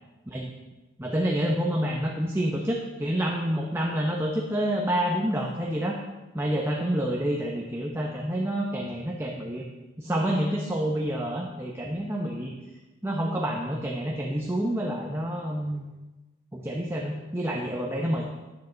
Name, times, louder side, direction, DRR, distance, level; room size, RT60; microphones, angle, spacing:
voice 1, 1.0-6.0 6.3-9.6 10.0-12.5 13.0-15.8 16.5-18.3, equal, 15° right, -1 dB, 0.9 m, -28 dB
11.0 x 10.0 x 4.0 m, 1.1 s
head